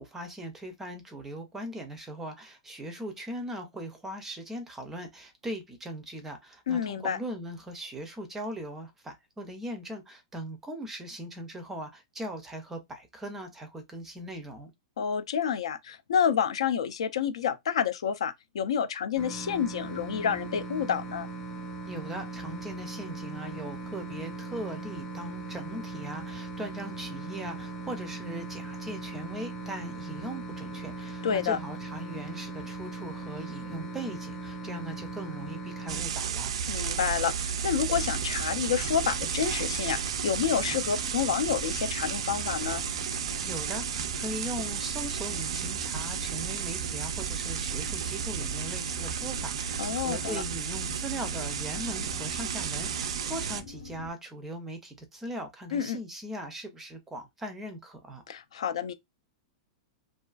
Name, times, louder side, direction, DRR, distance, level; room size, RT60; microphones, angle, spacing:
voice 1, 0.0-14.7 21.9-36.5 43.4-58.2, right 1 dB, 10° right, 0.4 m, -39 dB
voice 2, 6.7-7.2 15.0-21.3 31.2-31.6 36.7-42.8 49.8-50.4 55.7-56.0 58.3-58.9, left 8 dB, 85° left, 0.4 m, -29 dB
sound 1, 19.2-36.0, right 3 dB, 30° left, 0.7 m, -39 dB
sound 2, 35.9-53.6, right 8 dB, 80° right, 0.3 m, -33 dB
sound 3, 37.9-54.1, left 5 dB, 65° left, 0.8 m, -45 dB
2.4 x 2.3 x 2.3 m
supercardioid pair, 160°, 3 cm